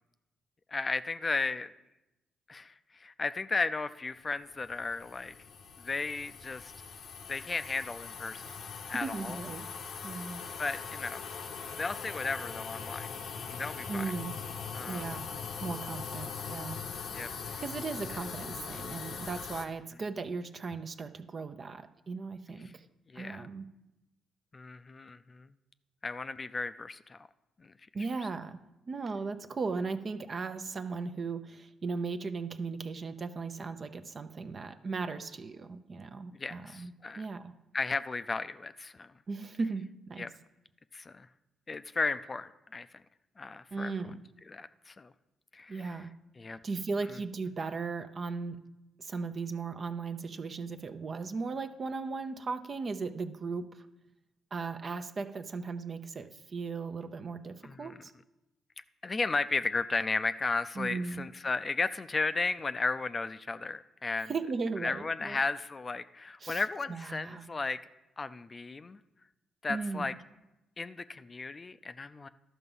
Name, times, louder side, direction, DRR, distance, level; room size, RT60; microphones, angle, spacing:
voice 1, 0.7-1.7 2.5-2.7 3.0-5.3 5.8-6.7 7.3-8.4 8.9-9.4 10.6-11.2 11.8-13.1 13.5-14.1 14.7-15.2 17.1-17.6 23.1-23.4 24.5-25.5 26.0-27.3 27.6-27.7 28.2-28.3 36.4-37.2 37.7-39.1 40.2-40.3 40.9-41.3 41.7-42.9 43.4-43.9 44.5-45.1 45.5-46.0 46.4-46.6 57.6-58.0 59.0-64.3 64.8-67.8 68.2-69.0 69.6-70.1 70.8-72.3, left 3 dB, 35° left, 12 dB, 0.5 m, -34 dB
sound 1, 4.5-19.7, left 6 dB, 65° left, 0.8 m, -41 dB
voice 2, 8.9-9.7 10.0-10.4 13.9-14.4 14.9-15.2 15.6-16.8 17.6-22.8 23.2-23.6 27.9-28.6 28.9-37.5 39.3-40.3 43.7-44.2 45.7-46.1 46.6-48.6 49.0-53.8 54.5-58.1 60.8-61.3 64.3-65.4 66.4-66.6 66.9-67.5 69.7-70.1, right 4 dB, 45° right, 9 dB, 0.7 m, -37 dB
12.0 x 5.8 x 5.5 m, 0.95 s
hypercardioid pair, 45°, 0 cm